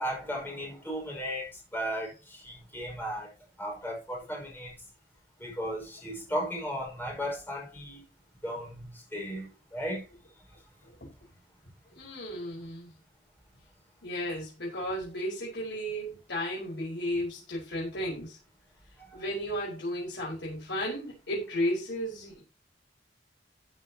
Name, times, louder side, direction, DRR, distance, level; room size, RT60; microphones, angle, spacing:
voice 1, 0.0-1.5 1.7-3.3 3.6-4.7 5.4-8.0 8.4-10.0, equal, 10° left, 5.8 m, -35 dB
voice 2, 11.9-12.9 14.0-18.4 19.1-22.4, equal, 75° left, 5.3 m, -34 dB
14.5 x 9.0 x 3.0 m
head